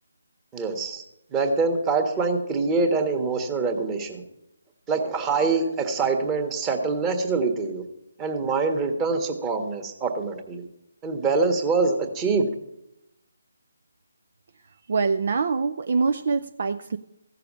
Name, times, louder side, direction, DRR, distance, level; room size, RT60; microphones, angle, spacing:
voice 1, 0.5-1.0 1.3-4.2 4.9-7.8 8.2-10.6 11.0-12.5, right 4 dB, 15° right, 4 dB, 1.6 m, -24 dB
voice 2, 14.9-17.0, right 4 dB, 50° right, 8 dB, 0.5 m, -24 dB
15.5 x 6.7 x 7.5 m, 0.86 s
figure-of-eight pair, 145°, 0 cm